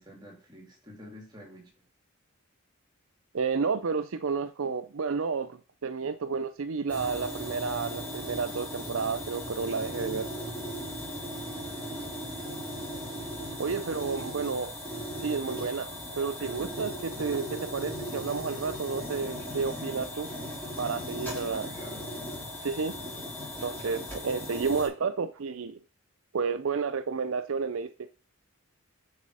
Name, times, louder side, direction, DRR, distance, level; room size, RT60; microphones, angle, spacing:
voice 1, 0.0-1.8 13.6-14.8 21.5-22.1 24.6-24.8, equal, 20° right, 3.1 m, -51 dB
voice 2, 3.3-10.3 13.6-14.7 15.2-15.9 16.1-20.3 20.8-21.7 22.6-23.0 23.6-25.8 26.3-28.1, right 5 dB, 70° right, 0.5 m, -31 dB
sound 1, 6.9-24.9, equal, 10° left, 3.9 m, -37 dB
9.7 x 5.0 x 4.8 m
head